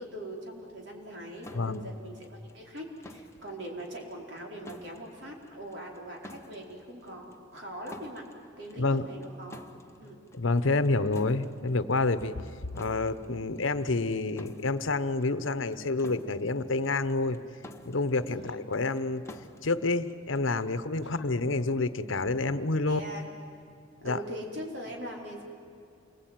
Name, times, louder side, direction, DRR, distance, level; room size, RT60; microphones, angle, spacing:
voice 1, 0.0-8.2 8.6-9.6 10.0-10.2 12.2-12.4 18.3-18.6 21.0-21.2 22.9-23.3 24.0-25.4, equal, 60° right, 0 dB, 4.6 m, -41 dB
sound 1, 1.4-20.8, left 1 dB, 15° left, 1.1 m, -52 dB
voice 2, 1.5-1.9 8.8-9.1 10.3-12.4 12.7-17.4 17.8-19.2 19.6-23.0 24.0-24.2, left 3 dB, 80° left, 12 dB, 1.0 m, -28 dB
28.0 x 21.0 x 9.2 m, 2.7 s
head